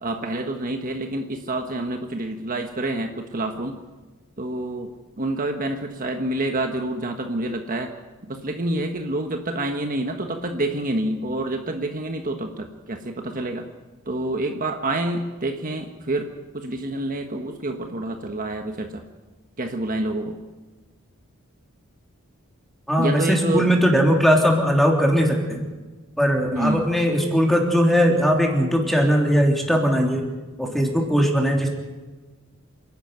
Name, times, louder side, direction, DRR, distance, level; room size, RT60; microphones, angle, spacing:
voice 1, 0.0-3.8 4.4-7.9 8.2-13.6 14.1-16.3 16.5-19.0 19.6-20.3 23.0-23.7 26.5-26.9, right 1 dB, 40° right, 4 dB, 1.4 m, -27 dB
voice 2, 22.9-25.6 26.2-30.2 30.6-31.7, equal, ahead, 1 dB, 3.4 m, -19 dB
27.5 x 12.0 x 9.4 m, 1.3 s
head